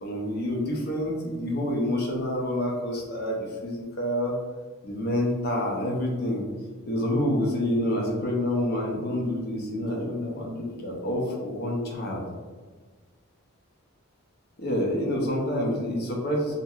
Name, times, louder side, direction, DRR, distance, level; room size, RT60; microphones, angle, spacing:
voice 1, 0.0-4.4 4.8-6.5 6.8-12.2 14.6-16.6, left 1 dB, 45° left, -2 dB, 0.6 m, -28 dB
2.8 x 2.8 x 2.4 m, 1.4 s
head